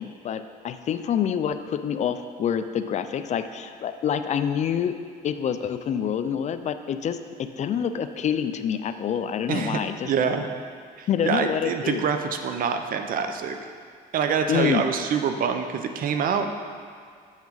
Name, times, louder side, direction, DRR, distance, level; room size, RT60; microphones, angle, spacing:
voice 1, 0.0-4.9 5.2-7.2 7.6-10.1 11.1-12.0 14.5-14.8, left 8 dB, 45° left, 10 dB, 0.4 m, -27 dB
voice 2, 9.5-9.8 10.0-10.5 11.0-13.6 14.1-16.5, right 6 dB, 55° right, 6 dB, 0.6 m, -25 dB
7.1 x 7.0 x 3.9 m, 2.1 s
cardioid pair, 110°, 17 cm